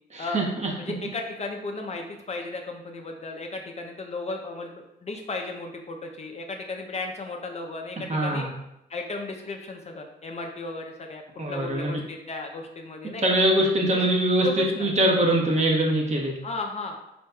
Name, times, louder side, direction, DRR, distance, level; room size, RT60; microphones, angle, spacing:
voice 1, 0.1-0.7 8.1-8.5 11.4-11.9 13.2-16.3, right 1 dB, 35° right, -1 dB, 1.1 m, -23 dB
voice 2, 0.8-8.5 8.9-11.2 11.5-13.2 13.9-14.0 14.4-14.9 16.4-17.0, left 3 dB, 35° left, 3 dB, 0.6 m, -35 dB
4.5 x 4.2 x 2.3 m, 0.85 s
cardioid pair, 90°, 20 cm